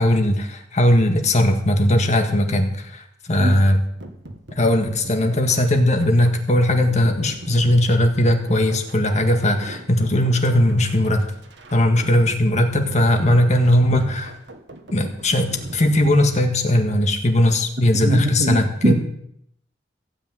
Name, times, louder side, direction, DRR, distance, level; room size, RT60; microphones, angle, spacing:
voice 1, 0.0-3.8 4.5-11.2 11.7-14.3 14.9-18.9, left 1 dB, 40° left, 4 dB, 1.7 m, -18 dB
sound 1, 4.0-16.6, right 1 dB, 75° right, 1.6 m, -41 dB
voice 2, 18.0-18.9, right 1 dB, 55° right, 4 dB, 2.1 m, -21 dB
15.5 x 6.2 x 9.1 m, 0.71 s
head